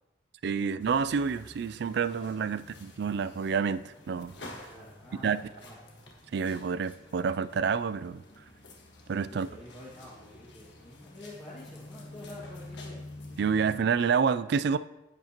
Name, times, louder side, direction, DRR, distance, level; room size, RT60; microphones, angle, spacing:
voice 1, 0.4-4.7 5.2-5.5 6.3-8.2 9.1-9.5 13.4-14.8, right 6 dB, 55° right, 15 dB, 0.3 m, -28 dB
sound 1, 0.8-13.8, left 2 dB, 60° left, 1.5 m, -49 dB
voice 2, 4.7-5.8 9.3-13.0, left 1 dB, 30° left, -10 dB, 2.2 m, -48 dB
10.5 x 9.0 x 3.0 m, 0.95 s
head